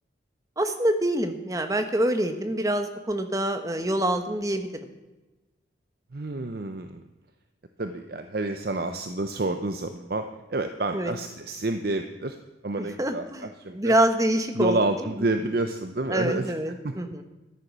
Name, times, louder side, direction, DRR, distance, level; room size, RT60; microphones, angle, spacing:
voice 1, 0.6-4.9 10.9-11.1 12.8-15.3 16.1-17.2, right 1 dB, 20° right, 7 dB, 1.0 m, -26 dB
voice 2, 6.1-7.0 7.8-10.2 10.5-12.4 12.6-13.9 14.6-16.5 16.8-16.9, right 2 dB, 55° right, 7 dB, 0.7 m, -29 dB
13.5 x 9.9 x 6.1 m, 1.1 s
head